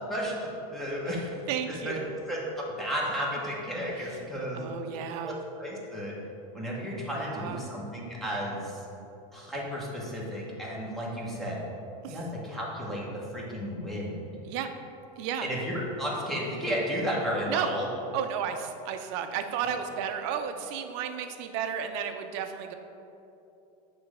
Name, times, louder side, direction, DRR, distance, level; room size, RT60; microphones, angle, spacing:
voice 1, 0.1-1.4 1.8-2.0 2.3-4.7 5.2-5.3 5.6-6.1 6.5-8.8 9.3-11.6 12.1-14.3 15.4-17.9, equal, ahead, -5 dB, 0.8 m, -33 dB
voice 2, 1.1-2.1 4.0-4.2 4.5-5.4 7.1-7.7 12.0-12.2 14.4-14.7 15.2-15.5 17.5-17.7 18.1-22.7, right 8 dB, 45° right, 6 dB, 0.5 m, -33 dB
8.1 x 3.2 x 4.8 m, 2.9 s
supercardioid pair, 170°, 20 cm